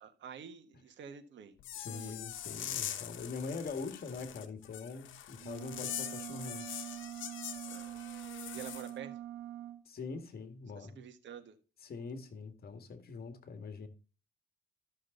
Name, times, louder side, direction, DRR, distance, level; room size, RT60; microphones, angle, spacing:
voice 1, 0.0-2.2 7.7-8.0 8.5-9.1 10.7-11.5, right 8 dB, 65° right, 1.6 m, -49 dB
sound 1, 1.6-8.9, left 11 dB, 75° left, 1.2 m, -43 dB
voice 2, 1.7-6.7 9.9-11.0 11.8-13.9, left 4 dB, 50° left, 2.1 m, -43 dB
sound 2, 5.4-9.8, right 13 dB, 85° right, 1.3 m, -44 dB
13.0 x 6.4 x 3.9 m
cardioid pair, 90°, 20 cm